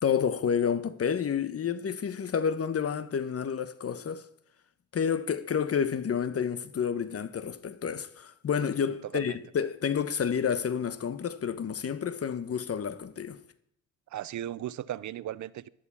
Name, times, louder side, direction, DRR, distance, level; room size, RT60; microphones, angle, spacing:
voice 1, 0.0-4.3 4.9-13.4, left 7 dB, 50° left, 1.2 m, -29 dB
voice 2, 8.9-9.4 14.1-15.7, right 12 dB, 70° right, 0.7 m, -37 dB
12.5 x 11.5 x 7.4 m
cardioid pair, 85°, 30 cm